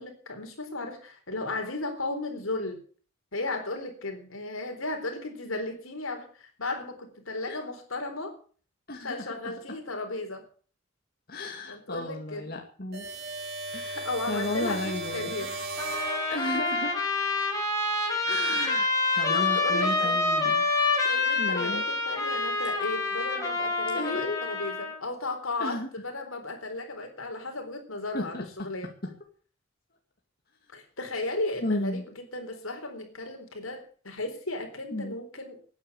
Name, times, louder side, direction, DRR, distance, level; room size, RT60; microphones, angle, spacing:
voice 1, 0.0-2.8 3.3-8.4 9.0-10.4 11.7-12.5 13.9-15.5 16.3-16.7 19.2-20.2 21.0-28.9 30.7-35.6, left 2 dB, 80° left, 6 dB, 4.0 m, -35 dB
voice 2, 8.9-9.5 11.3-13.1 13.7-15.3 16.3-17.1 18.2-20.6 21.4-21.8 23.9-24.4 25.6-25.9 28.1-28.7 31.6-32.0 34.9-35.2, left 2 dB, 45° left, 2 dB, 2.3 m, -34 dB
sound 1, 12.9-16.8, right 2 dB, 50° right, 3.8 m, -36 dB
Trumpet, 15.8-25.0, left 3 dB, 15° left, 5.1 m, -27 dB
13.5 x 9.7 x 8.4 m, 0.43 s
head